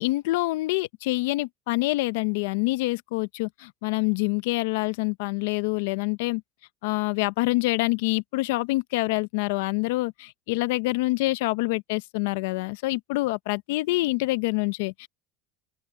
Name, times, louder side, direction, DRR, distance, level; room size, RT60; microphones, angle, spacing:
voice 1, 0.0-6.4 6.8-15.1, left 21 dB, 80° left, 0.7 m, -26 dB
open air
supercardioid pair, 125°, 0 cm